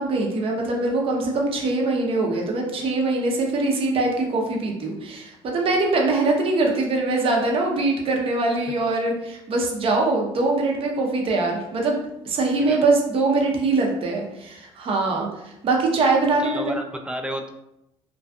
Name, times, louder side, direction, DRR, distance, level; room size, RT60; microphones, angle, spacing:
voice 1, 0.0-12.0 12.2-16.8, right 3 dB, 50° right, 0 dB, 0.7 m, -23 dB
voice 2, 16.4-17.5, right 1 dB, 10° right, 4 dB, 0.4 m, -31 dB
2.6 x 2.3 x 2.3 m, 0.86 s
supercardioid pair, 75°, 12 cm